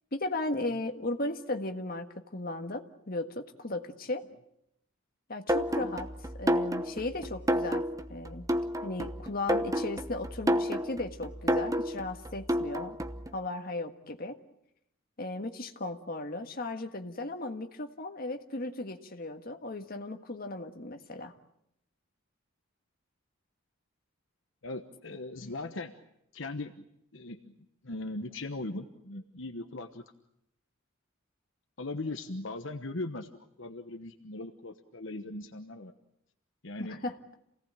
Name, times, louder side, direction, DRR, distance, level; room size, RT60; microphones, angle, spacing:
voice 1, 0.1-4.3 5.3-6.1 6.4-8.5 8.8-13.0 13.3-14.4 15.2-21.3 25.4-25.5 36.8-37.4, left 2 dB, 45° left, 5 dB, 1.7 m, -36 dB
sound 1, 5.5-13.3, equal, 15° right, 0.9 m, -30 dB
voice 2, 24.6-25.9 26.3-26.7 27.1-27.5 27.8-30.0 31.8-33.3 33.6-35.9 36.6-37.0, left 2 dB, 65° left, 6 dB, 1.2 m, -39 dB
28.0 x 18.0 x 8.9 m, 0.78 s
head